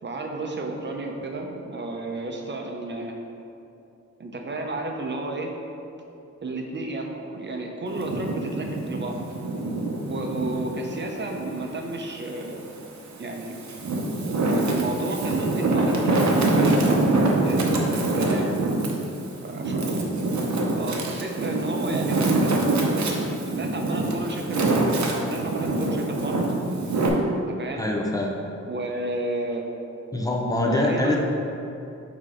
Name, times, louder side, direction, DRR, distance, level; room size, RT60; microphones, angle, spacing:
voice 1, 0.0-3.1 4.2-5.5 6.4-9.2 10.1-12.6 13.2-13.6 14.2-14.4 14.7-18.5 19.4-20.0 20.8-26.4 27.4-27.8 28.6-29.7 30.6-31.2, right 2 dB, 40° right, 2 dB, 0.7 m, -32 dB
Wind, 7.9-10.7 11.2-12.5 13.1-27.1, right 2 dB, 70° right, 0.8 m, -25 dB
voice 2, 27.8-28.4 30.1-31.2, left 1 dB, 10° left, -1 dB, 0.7 m, -24 dB
5.8 x 4.0 x 4.9 m, 2.8 s
wide cardioid pair, 140°, 30 cm